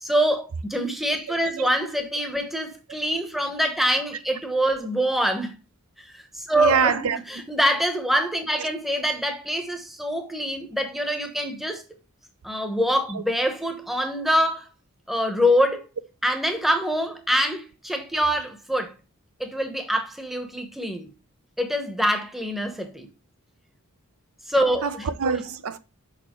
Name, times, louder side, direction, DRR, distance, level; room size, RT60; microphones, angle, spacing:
voice 1, 0.0-5.6 6.0-11.8 12.4-14.7 15.1-15.8 16.2-18.9 19.4-21.1 21.6-23.1 24.5-25.1, equal, ahead, 0.8 m, -25 dB
voice 2, 6.6-7.2 13.1-13.2 24.8-25.8, right 6 dB, 75° right, 0.5 m, -24 dB
6.5 x 5.5 x 3.0 m
head